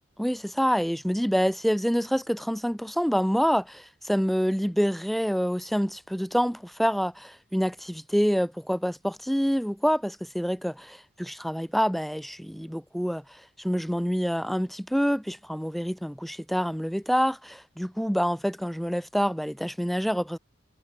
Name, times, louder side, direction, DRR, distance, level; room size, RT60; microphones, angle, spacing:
voice 1, 0.2-20.4, equal, ahead, 3.1 m, -27 dB
head